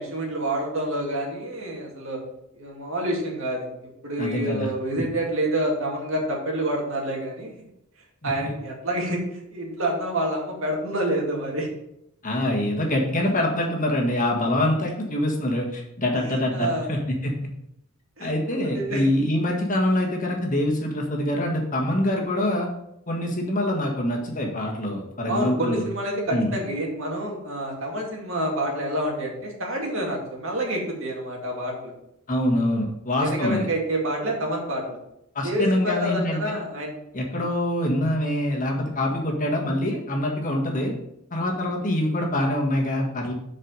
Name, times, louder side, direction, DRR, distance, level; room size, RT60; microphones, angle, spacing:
voice 1, 0.0-2.2 2.6-7.5 8.2-11.7 16.1-16.2 16.5-16.9 18.2-19.0 25.3-31.9 33.2-35.0 35.4-36.9, right 1 dB, 65° right, 0 dB, 2.1 m, -28 dB
voice 2, 4.2-4.7 8.2-8.5 12.2-17.5 18.2-22.7 23.1-25.8 26.3-26.5 32.3-33.6 35.3-36.4 37.1-40.9 41.3-43.3, left 1 dB, 35° left, 0 dB, 1.6 m, -25 dB
7.5 x 5.0 x 5.3 m, 0.80 s
head